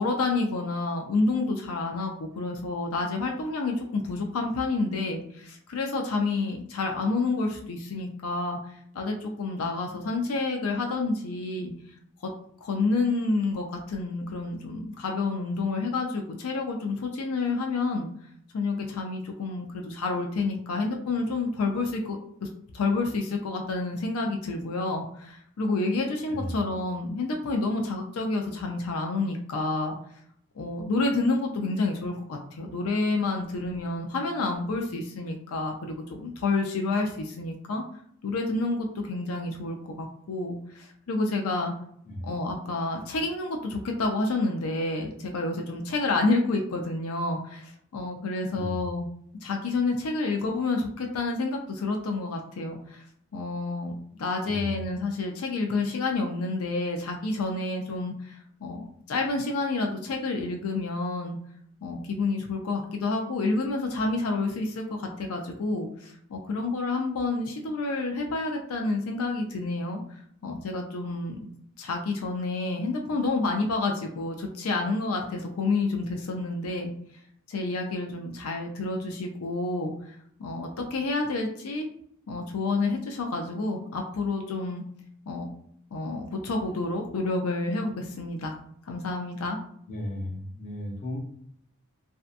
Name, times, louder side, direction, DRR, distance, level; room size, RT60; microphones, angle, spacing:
voice 1, 0.0-8.6 8.9-11.7 12.2-12.3 12.6-18.1 18.5-22.5 22.7-30.0 30.6-37.8 38.2-41.7 42.2-49.1 49.4-53.0 53.3-53.9 54.2-61.4 61.8-71.5 71.8-76.9 77.5-79.9 80.4-81.9 82.3-84.8 85.3-85.5 85.9-88.5 88.9-89.6, left 3 dB, 85° left, 2 dB, 0.4 m, -29 dB
voice 2, 54.4-54.8 89.9-91.2, left 1 dB, 35° left, -1 dB, 0.7 m, -35 dB
2.6 x 2.2 x 2.4 m, 0.67 s
head